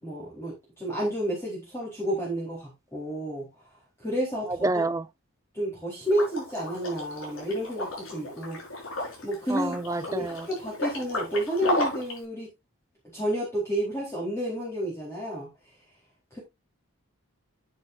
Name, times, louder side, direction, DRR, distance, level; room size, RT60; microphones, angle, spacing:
voice 1, 0.0-3.5 4.0-4.8 5.5-8.6 9.2-9.8 10.1-12.5 13.1-15.5 16.3-16.4, right 1 dB, 10° left, 4.1 m, -30 dB
voice 2, 4.6-5.0 9.5-10.5, right 2 dB, 15° right, 0.4 m, -28 dB
Liquid, 6.1-12.2, left 1 dB, 65° left, 5.6 m, -34 dB
10.5 x 8.8 x 2.7 m
head